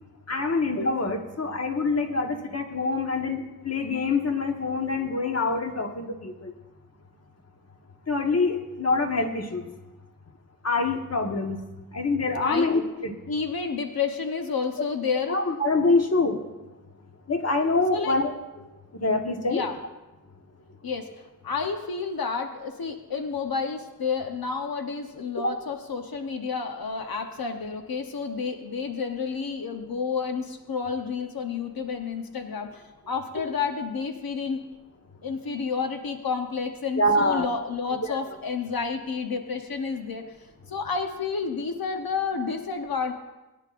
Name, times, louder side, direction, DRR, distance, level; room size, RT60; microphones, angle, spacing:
voice 1, 0.3-6.5 8.1-9.6 10.6-11.6 11.9-13.1 15.3-16.4 17.3-18.3 18.9-19.6 25.4-25.5 37.0-37.5 38.0-38.3, left 3 dB, 45° left, 3 dB, 1.3 m, -25 dB
voice 2, 13.3-15.4 17.9-18.2 19.4-19.8 20.8-34.7 35.2-40.2 40.7-43.1, left 5 dB, 90° left, 5 dB, 0.9 m, -30 dB
21.0 x 10.5 x 2.5 m, 1.1 s
wide cardioid pair, 100°, 35 cm